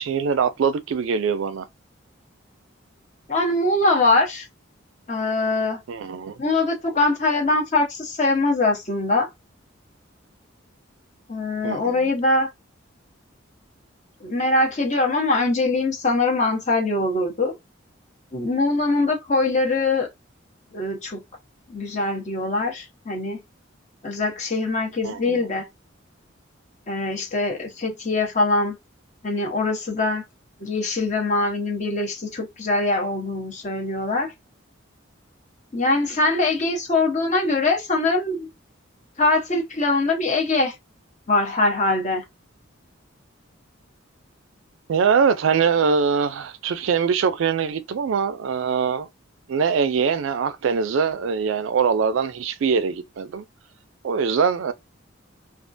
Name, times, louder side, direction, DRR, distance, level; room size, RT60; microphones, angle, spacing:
voice 1, 0.0-1.7 5.9-6.4 11.6-12.1 25.0-25.5 44.9-49.1 49.5-53.5 54.0-54.7, right 6 dB, 75° right, 0.3 m, -23 dB
voice 2, 3.3-4.5 5.1-5.8 6.4-9.3 11.3-12.5 14.2-17.5 18.3-20.1 20.7-21.2 21.7-23.4 24.0-25.7 26.9-28.8 29.2-30.2 30.6-34.3 35.7-38.5 39.2-40.7 41.3-42.2, left 2 dB, 35° left, 0.8 m, -22 dB
2.3 x 2.1 x 2.5 m
head